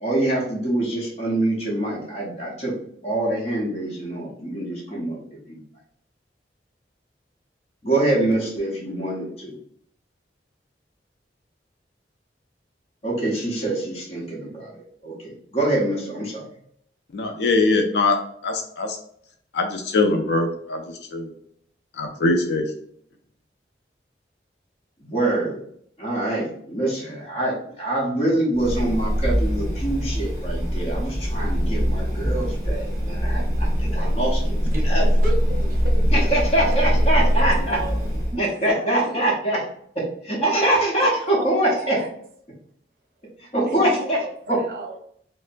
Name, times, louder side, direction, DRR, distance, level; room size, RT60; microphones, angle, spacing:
voice 1, 0.0-2.7 3.0-5.2 5.5-5.6 7.8-9.5 13.0-14.7 15.0-16.5 25.0-25.6 26.0-34.6 34.8-35.1 36.1-37.8 38.4-39.6 40.2-42.0 43.4-44.2 44.5-44.6, right 1 dB, 35° left, 0.9 m, -24 dB
voice 2, 17.1-18.2 18.4-19.0 19.5-21.3 21.9-22.7, left 3 dB, 75° left, 0.4 m, -22 dB
sound 1, 28.5-38.4, equal, 25° right, 1.1 m, -22 dB
voice 3, 35.2-37.9 38.3-39.2 41.0-42.1 43.7-45.0, right 1 dB, 50° right, 0.7 m, -35 dB
4.2 x 2.0 x 2.5 m
head